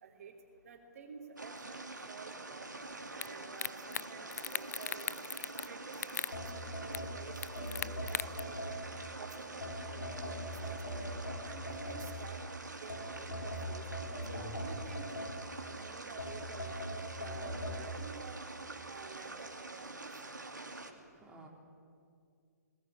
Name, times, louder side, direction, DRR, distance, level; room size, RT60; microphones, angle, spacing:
voice 1, 0.0-0.3 0.6-2.7 3.1-5.1 5.7-7.3 7.8-8.8 9.2-11.1 11.4-12.4 12.7-13.8 14.3-15.3 15.6-18.4 18.8-20.1, right 5 dB, 55° right, 2 dB, 3.1 m, -51 dB
sound 1, 1.4-20.9, right 2 dB, 85° right, 2.6 m, -46 dB
sound 2, 3.2-3.3 3.6-4.0 4.3-5.7 5.9-6.3 6.9-7.0 7.4-8.4, left 7 dB, 65° left, 0.5 m, -37 dB
sound 3, 6.3-9.1 9.6-12.4 12.9-15.7 16.2-17.8, equal, 85° left, 6.2 m, -41 dB
voice 2, 20.9-21.5, right 2 dB, 10° right, -2 dB, 3.4 m, -56 dB
21.0 x 18.0 x 9.8 m, 2.3 s
figure-of-eight pair, 130°, 10 cm